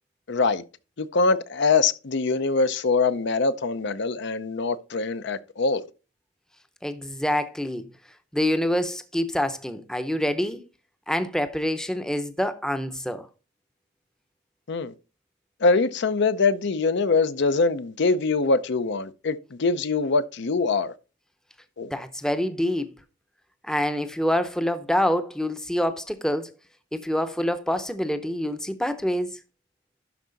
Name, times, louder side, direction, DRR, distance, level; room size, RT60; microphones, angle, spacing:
voice 1, 0.3-0.6 1.0-5.8 14.7-14.9 15.6-20.9 21.8-21.9, left 4 dB, 65° left, 0.6 m, -23 dB
voice 2, 6.8-7.9 8.3-10.6 11.1-13.3 21.9-22.9 23.6-26.5 26.9-29.4, left 1 dB, 5° left, 0.6 m, -26 dB
12.0 x 4.6 x 3.9 m
head